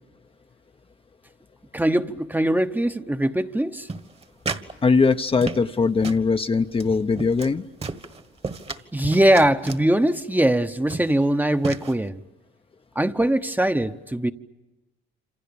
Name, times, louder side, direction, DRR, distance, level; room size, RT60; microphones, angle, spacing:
voice 1, 1.7-3.9 8.9-12.2 12.9-14.3, right 1 dB, 10° right, 1.0 m, -21 dB
sound 1, 3.9-4.7 5.0-5.8 6.0-6.3 6.7-6.9 7.2-7.5 7.8-8.8 9.1-9.9 10.5-10.6 10.9-11.2 11.6-11.9, right 4 dB, 30° right, 1.6 m, -33 dB
voice 2, 4.8-7.6, left 4 dB, 30° left, 0.8 m, -21 dB
27.5 x 27.0 x 7.0 m
cardioid pair, 90°, 20 cm